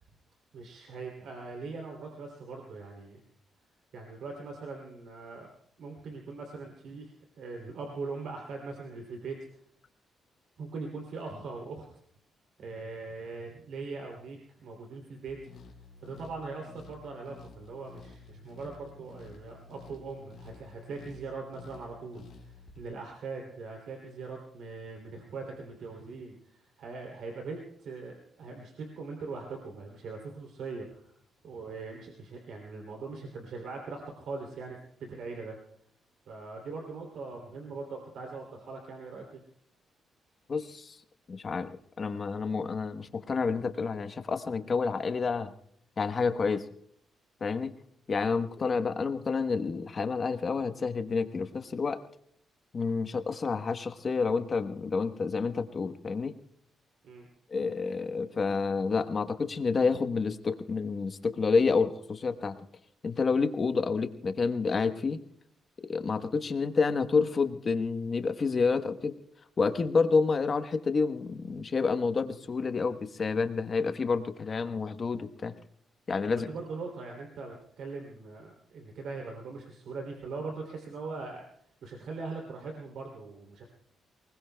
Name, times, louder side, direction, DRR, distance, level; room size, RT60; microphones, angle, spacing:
voice 1, 0.5-3.2 3.9-5.5 5.8-9.3 10.6-11.8 12.6-15.4 16.0-31.1 31.4-34.8 35.1-35.6 36.3-39.2 48.6-48.7 57.0-57.3 76.3-81.4 81.8-83.6, right 4 dB, 75° right, 1 dB, 2.9 m, -41 dB
sound 1, 15.3-22.8, left 4 dB, 70° left, 2.5 m, -51 dB
voice 2, 40.5-41.0 41.3-41.7 42.0-45.5 46.0-46.6 47.4-47.7 48.1-52.0 52.7-56.3 57.5-62.5 63.0-65.2 65.9-69.2 69.6-75.5 76.1-76.5, left 4 dB, 40° left, 8 dB, 1.1 m, -29 dB
29.0 x 20.0 x 2.3 m, 0.68 s
cardioid pair, 115°, 0 cm